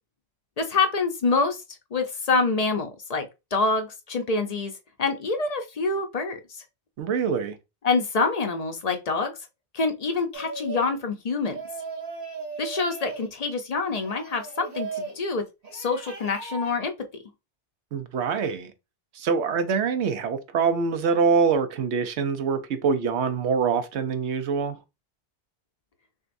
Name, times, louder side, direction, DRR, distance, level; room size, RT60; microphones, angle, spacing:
voice 1, 0.6-1.6 1.9-4.7 5.0-6.6 7.8-9.3 9.7-11.6 12.6-15.4 15.7-16.9, left 4 dB, 45° left, 0.6 m, -26 dB
voice 2, 7.0-7.6 17.9-18.7 19.1-24.8, right 5 dB, 80° right, 0.9 m, -24 dB
sound 1, 10.3-11.0 11.5-13.3 13.9-15.2 15.6-16.8, right 4 dB, 40° right, 0.9 m, -37 dB
6.2 x 2.3 x 2.5 m
omnidirectional pair, 1.1 m